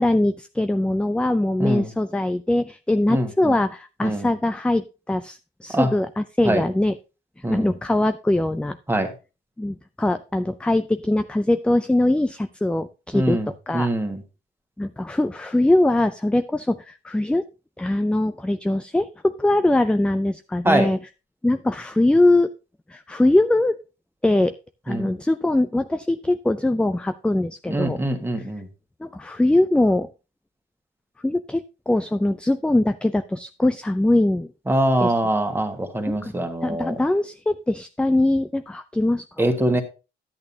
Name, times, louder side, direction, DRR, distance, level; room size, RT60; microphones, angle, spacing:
voice 1, 0.0-6.9 7.4-8.8 9.6-13.9 14.8-17.4 17.8-21.0 21.4-22.5 22.9-23.8 24.2-24.5 24.9-28.0 29.0-30.1 31.2-34.5 35.0-35.1 36.1-36.3 36.6-39.2 39.7-39.8, left 1 dB, 5° left, 11 dB, 0.4 m, -22 dB
voice 2, 1.6-1.9 3.1-3.6 4.0-4.3 5.7-5.9 6.4-6.6 7.4-7.7 8.9-9.1 13.1-14.2 20.6-20.9 24.9-25.1 27.7-28.7 34.7-37.0 39.4-39.8, right 1 dB, 10° right, 5 dB, 1.7 m, -23 dB
10.5 x 8.8 x 2.8 m, 0.30 s
cardioid pair, 90°, 20 cm